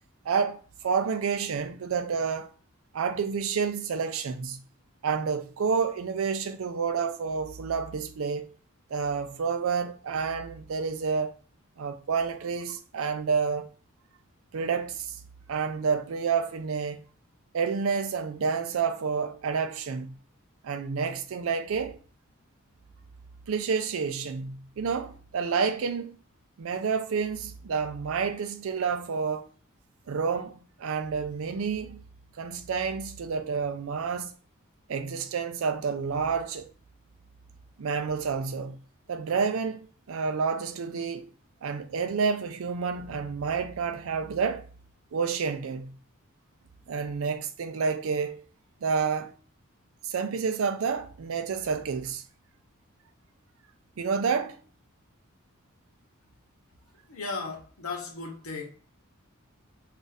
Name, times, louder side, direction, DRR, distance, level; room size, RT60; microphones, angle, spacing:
voice 1, 0.3-2.5 2.9-4.6 5.0-8.5 8.9-11.3 11.8-13.7 14.5-15.2 15.5-17.0 17.5-20.1 20.6-22.0 23.5-26.2 26.6-29.5 30.1-32.0 32.4-34.3 34.9-36.7 37.8-38.8 39.1-39.8 40.1-41.3 41.6-44.6 45.1-45.9 46.9-48.4 48.8-49.3 50.0-52.2 54.0-54.6, right 5 dB, 70° right, 0.4 m, -29 dB
voice 2, 57.1-58.7, left 4 dB, 85° left, 0.9 m, -36 dB
2.5 x 2.4 x 4.0 m
head